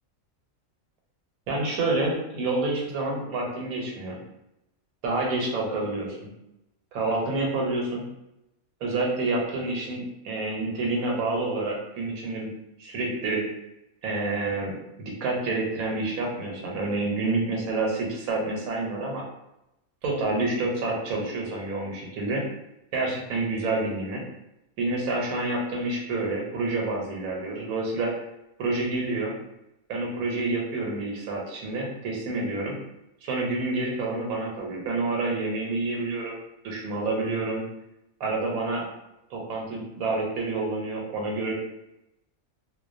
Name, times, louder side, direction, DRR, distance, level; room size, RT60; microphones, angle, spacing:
voice 1, 1.5-4.2 5.0-6.2 6.9-8.0 8.8-12.5 12.8-13.4 14.0-19.2 20.0-22.4 22.9-24.2 24.8-28.1 28.6-29.3 29.9-32.8 33.2-36.4 36.6-37.6 38.2-38.9 39.3-41.5, right 2 dB, 85° right, -1 dB, 1.1 m, -28 dB
2.3 x 2.2 x 2.4 m, 0.89 s
omnidirectional pair, 1.5 m